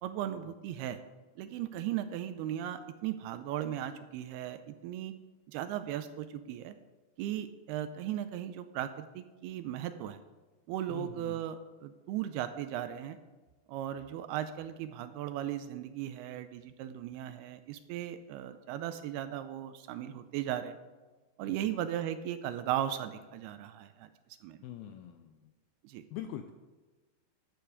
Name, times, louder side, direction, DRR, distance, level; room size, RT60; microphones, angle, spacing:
voice 1, 0.0-1.0 1.4-5.1 5.5-6.8 7.2-10.2 10.7-13.2 13.7-20.8 21.4-24.1 24.4-24.6 25.8-26.0, right 11 dB, 80° right, 10 dB, 2.4 m, -37 dB
voice 2, 10.9-11.4 21.5-21.7 24.6-25.4 26.1-26.5, left 10 dB, 85° left, 7 dB, 2.1 m, -43 dB
12.0 x 8.2 x 4.9 m, 1.3 s
omnidirectional pair, 4.8 m